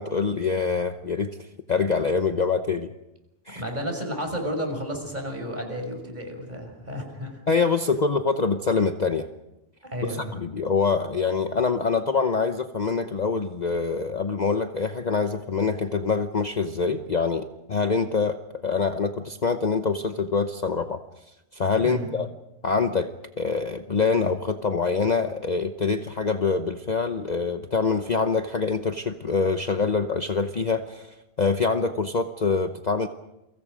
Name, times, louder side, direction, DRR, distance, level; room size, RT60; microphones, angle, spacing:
voice 1, 0.0-1.4 1.7-2.9 3.5-3.6 7.5-9.3 10.0-21.0 21.5-22.3 22.6-23.1 23.4-33.1, left 4 dB, 35° left, 7 dB, 0.9 m, -25 dB
voice 2, 3.5-7.4 9.8-10.3 21.8-22.1, equal, 35° right, 3 dB, 6.3 m, -32 dB
29.5 x 24.5 x 5.2 m, 0.93 s
omnidirectional pair, 1.3 m